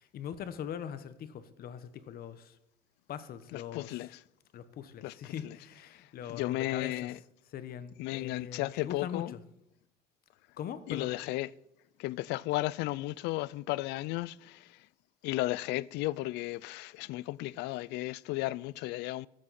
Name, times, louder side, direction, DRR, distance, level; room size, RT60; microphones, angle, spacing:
voice 1, 0.0-2.6 3.1-4.1 4.5-7.2 7.4-9.4 10.6-11.2, left 9 dB, 65° left, 1.1 m, -41 dB
voice 2, 3.5-4.1 5.0-5.1 6.3-7.2 8.0-9.3 10.9-11.5 12.0-14.6 15.2-19.3, left 18 dB, 90° left, 0.4 m, -34 dB
14.0 x 13.0 x 4.2 m
cardioid pair, 110°, 17 cm